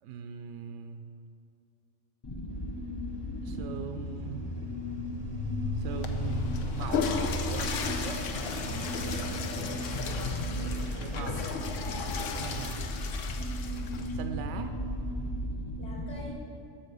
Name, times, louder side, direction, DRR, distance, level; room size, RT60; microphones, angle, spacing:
voice 1, 0.0-1.1 3.4-4.4 5.7-8.2 9.6-10.0 11.0-11.4 12.2-12.8 14.1-14.7, right 7 dB, 70° right, 7 dB, 0.9 m, -40 dB
sound 1, 2.2-16.3, left 1 dB, 30° left, 0.4 m, -35 dB
Train, 2.5-15.5, right 2 dB, 30° right, 0.7 m, -49 dB
Water / Toilet flush, 5.9-14.2, left 6 dB, 75° left, 1.0 m, -36 dB
voice 2, 8.4-9.3 11.1-11.6 15.8-16.4, left 1 dB, 50° left, -4 dB, 2.8 m, -45 dB
13.0 x 4.4 x 6.8 m, 2.5 s
omnidirectional pair, 1.3 m